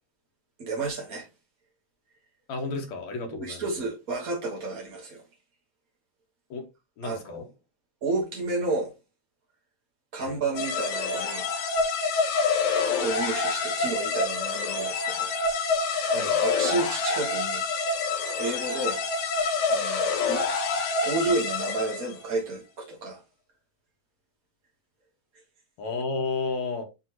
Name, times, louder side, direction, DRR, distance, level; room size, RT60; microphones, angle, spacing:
voice 1, 0.6-1.3 3.3-5.2 7.0-7.4 8.0-8.9 10.1-11.5 13.0-15.3 16.1-17.6 18.4-19.0 19.7-20.4 21.0-23.2, right 3 dB, 45° right, 1.1 m, -31 dB
voice 2, 2.5-3.9 6.5-6.6 7.0-7.4 10.2-10.4 16.1-16.4 25.8-26.8, left 3 dB, 70° left, 2.7 m, -32 dB
sound 1, 10.5-22.2, left 4 dB, 90° left, 2.6 m, -27 dB
9.7 x 3.4 x 2.9 m
omnidirectional pair, 3.3 m